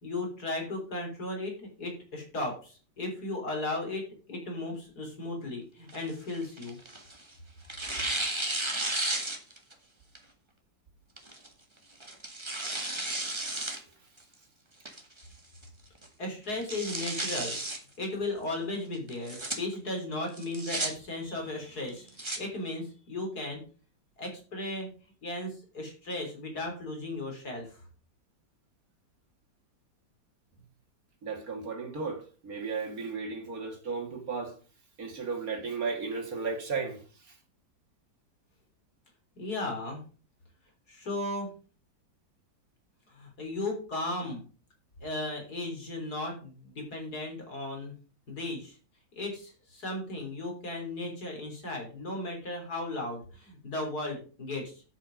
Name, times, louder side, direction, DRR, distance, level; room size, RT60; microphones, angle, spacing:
voice 1, 0.0-6.8 16.2-17.6 18.0-23.6 24.2-24.9 25.2-27.7 39.4-40.0 40.9-41.5 43.1-44.4 45.0-47.9 48.3-48.7 49.2-54.8, left 2 dB, 60° left, 4.0 m, -36 dB
Tearing, 5.9-7.2 7.7-9.7 10.2-10.3 11.2-11.5 12.0-13.8 14.2-14.3 14.9-15.3 15.6-15.7 16.0-16.1 16.5-17.8 19.1-19.6 20.3-20.9 21.9-22.4, right 2 dB, 15° right, 1.7 m, -33 dB
voice 2, 13.5-14.1 31.2-34.6 35.0-37.4, right 4 dB, 55° right, 2.4 m, -35 dB
8.8 x 8.4 x 5.2 m
omnidirectional pair, 1.9 m